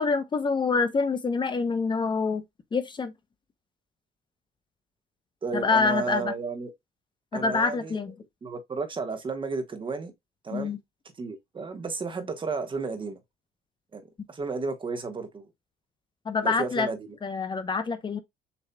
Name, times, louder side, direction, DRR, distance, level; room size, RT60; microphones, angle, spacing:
voice 1, 0.0-2.4 2.7-3.1 5.5-6.3 7.3-8.1 10.5-10.8 16.3-16.9 17.2-18.2, left 4 dB, 30° left, 0.7 m, -26 dB
voice 2, 5.4-6.7 7.3-8.0 8.4-10.1 10.4-10.8 11.2-13.2 13.9-15.5 16.4-17.1, right 4 dB, 30° right, 1.3 m, -33 dB
6.9 x 3.1 x 2.2 m
cardioid pair, 110°, 17 cm